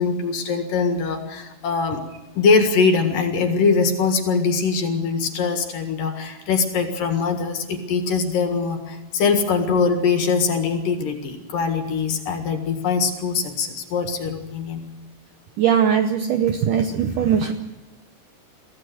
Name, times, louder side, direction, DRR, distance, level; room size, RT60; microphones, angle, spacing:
voice 1, 0.0-2.0 2.4-14.8, left 5 dB, 60° left, 6 dB, 3.1 m, -22 dB
voice 2, 15.6-17.5, right 8 dB, 75° right, 6 dB, 1.9 m, -20 dB
23.0 x 15.5 x 7.8 m, 1.0 s
omnidirectional pair, 4.9 m